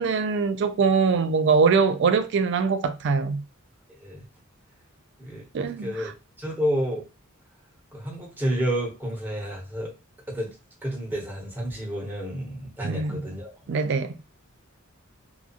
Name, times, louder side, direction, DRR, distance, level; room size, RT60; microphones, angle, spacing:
voice 1, 0.0-3.4 5.5-6.1 12.8-13.2 13.7-14.2, right 5 dB, 60° right, 0.4 m, -23 dB
voice 2, 5.2-6.1 6.4-7.0 7.9-9.9 10.3-10.5 10.8-13.5, equal, 10° right, 1.1 m, -30 dB
2.8 x 2.3 x 2.4 m
head